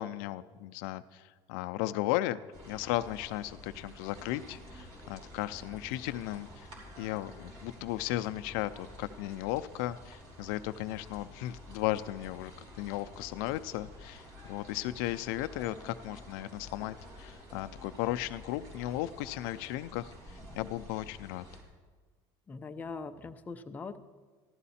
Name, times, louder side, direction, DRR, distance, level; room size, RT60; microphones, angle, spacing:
voice 1, 0.0-6.7 7.0-12.5 12.8-21.4, left 15 dB, 85° left, 11 dB, 0.4 m, -35 dB
sound 1, 2.5-21.6, equal, 50° right, 3.3 m, -50 dB
voice 2, 22.5-24.0, left 4 dB, 15° left, 6 dB, 0.5 m, -41 dB
14.0 x 12.5 x 4.2 m, 1.4 s
cardioid pair, 150°, 11 cm